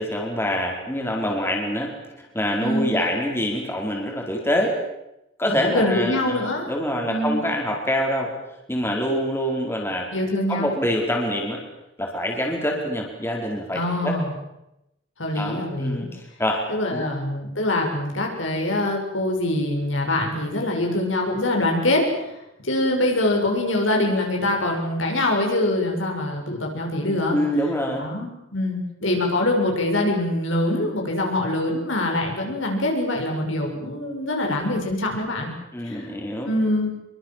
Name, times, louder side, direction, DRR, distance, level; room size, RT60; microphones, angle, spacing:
voice 1, 0.0-4.7 5.4-8.3 8.7-10.1 10.5-11.6 12.0-14.1 15.3-16.6 16.9-17.1 27.3-28.1 35.7-36.5, equal, 10° left, 0 dB, 4.6 m, -25 dB
voice 2, 2.6-2.9 5.5-6.7 7.1-7.4 10.1-10.7 13.7-14.3 15.2-16.1 16.7-22.3 22.6-27.4 28.0-35.5 35.8-36.1 36.5-36.9, left 1 dB, 70° left, 1 dB, 7.1 m, -24 dB
26.0 x 23.5 x 7.6 m, 0.88 s
head